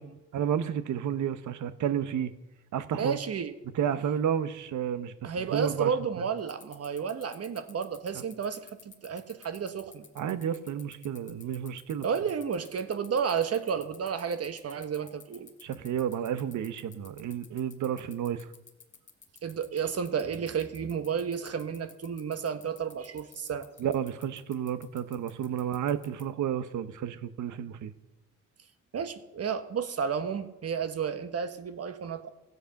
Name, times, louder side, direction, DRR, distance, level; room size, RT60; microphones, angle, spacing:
voice 1, 0.3-2.3 2.7-3.2 3.8-5.9 10.2-12.1 15.6-18.5 23.8-27.9, right 9 dB, 80° right, 13 dB, 0.9 m, -31 dB
voice 2, 2.9-3.5 5.2-10.1 12.0-15.5 19.4-23.7 28.9-32.3, right 7 dB, 55° right, 10 dB, 1.3 m, -32 dB
sound 1, 6.4-26.2, left 6 dB, 40° left, 1.9 m, -52 dB
15.5 x 8.0 x 5.8 m, 1.0 s
cardioid pair, 75°, 30 cm